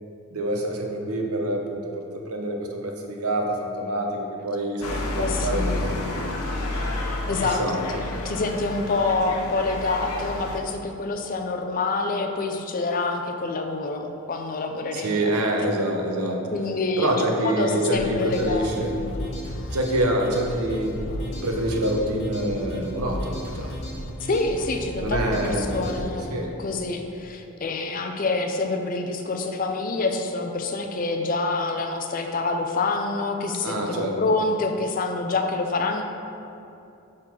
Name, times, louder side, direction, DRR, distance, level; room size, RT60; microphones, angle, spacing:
voice 1, 0.3-5.9 7.4-7.8 14.9-16.5 17.0-19.3 19.7-21.0 21.3-23.8 25.0-26.6 33.6-34.1, right 1 dB, 85° right, 2 dB, 0.8 m, -26 dB
sound 1, 4.8-10.6, left 2 dB, 85° left, 0.8 m, -30 dB
voice 2, 5.1-5.8 7.3-15.3 16.5-18.9 24.2-36.0, left 3 dB, 40° left, 4 dB, 0.4 m, -27 dB
sound 2, 17.9-26.1, equal, 55° left, 1.0 m, -34 dB
6.3 x 3.8 x 5.7 m, 2.7 s
head